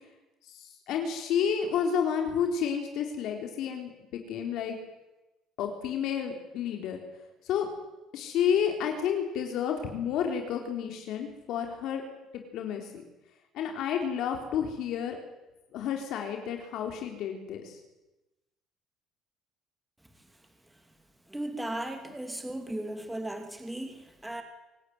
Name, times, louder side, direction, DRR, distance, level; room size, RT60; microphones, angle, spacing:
voice 1, 0.5-4.8 5.6-7.0 7.4-7.7 8.1-12.0 12.5-13.0 13.5-15.2 15.7-17.8, left 8 dB, 60° left, 3 dB, 3.7 m, -30 dB
voice 2, 21.3-24.4, right 1 dB, 5° right, 5 dB, 2.8 m, -36 dB
26.0 x 18.0 x 9.5 m, 1.0 s
cardioid pair, 155°, 0 cm